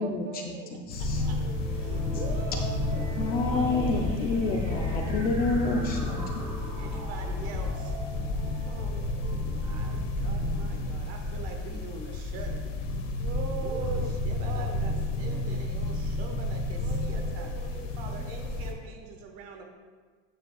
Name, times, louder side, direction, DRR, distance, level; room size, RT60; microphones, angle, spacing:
voice 1, 0.0-0.7 1.2-2.1 3.7-4.8 6.1-7.0 8.6-9.7 13.2-14.1 14.4-15.7 16.8-19.1, right 5 dB, 80° right, 4 dB, 1.1 m, -43 dB
sound 1, 0.9-18.7, left 2 dB, 90° left, 1.2 m, -31 dB
voice 2, 0.9-1.2 3.2-6.2, left 3 dB, 25° left, 2 dB, 0.5 m, -28 dB
sound 2, 0.9-11.1, right 1 dB, 15° right, 1.0 m, -38 dB
voice 3, 1.8-3.1 3.5-4.0 6.8-7.9 9.4-12.8 13.6-17.5 18.0-19.6, right 4 dB, 40° right, 3 dB, 1.3 m, -43 dB
9.0 x 6.7 x 2.4 m, 1.5 s
supercardioid pair, 155°, 36 cm